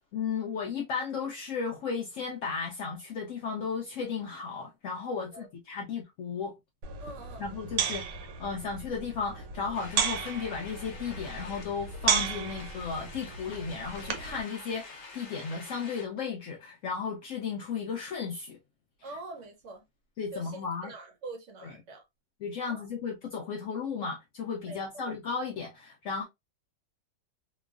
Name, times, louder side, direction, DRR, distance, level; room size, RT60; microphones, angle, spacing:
voice 1, 0.1-6.5 7.4-8.0 8.4-18.6 20.2-20.9 21.6-21.7 22.4-26.2, left 5 dB, 80° left, 0.7 m, -34 dB
sound 1, 6.8-14.4, right 7 dB, 80° right, 1.3 m, -34 dB
voice 2, 7.0-7.4 19.0-19.9 20.3-22.0 22.6-22.9 24.7-25.1, right 2 dB, 60° right, 0.8 m, -44 dB
sound 2, 9.7-16.0, left 3 dB, 60° left, 1.0 m, -48 dB
3.0 x 2.2 x 2.3 m
omnidirectional pair, 1.9 m